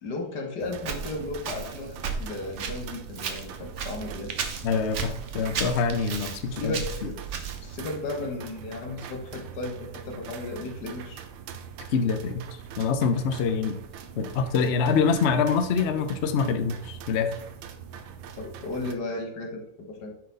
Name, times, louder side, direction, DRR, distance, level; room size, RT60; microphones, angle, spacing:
voice 1, 0.0-4.3 6.6-7.2 7.6-11.3 18.3-20.1, left 2 dB, 65° left, 2 dB, 1.8 m, -35 dB
sound 1, 0.6-18.9, right 7 dB, 85° right, 1.4 m, -43 dB
Walk footsteps, 0.8-7.8, right 5 dB, 55° right, 0.9 m, -35 dB
voice 2, 4.6-6.7 11.9-12.4 12.8-13.8 14.2-17.3, left 5 dB, 85° left, 8 dB, 0.5 m, -25 dB
8.9 x 4.0 x 3.9 m, 0.73 s
omnidirectional pair, 2.0 m